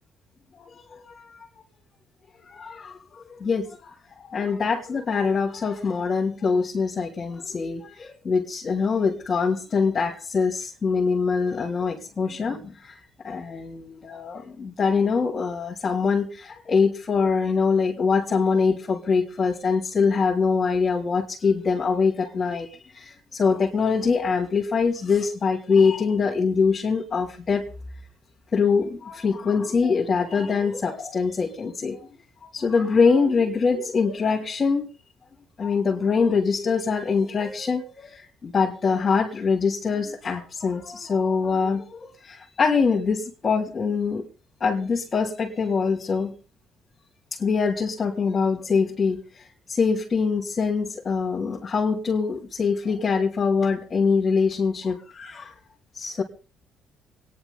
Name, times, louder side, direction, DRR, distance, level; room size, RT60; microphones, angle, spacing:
voice 1, 0.9-1.4 2.5-3.9 4.2-13.0 13.2-27.7 28.5-32.0 32.5-34.9 35.6-44.2 44.6-46.3 47.4-55.5 55.9-56.2, left 5 dB, 35° left, -3 dB, 3.3 m, -24 dB
27.0 x 10.0 x 4.1 m, 0.37 s
cardioid pair, 95°, 0 cm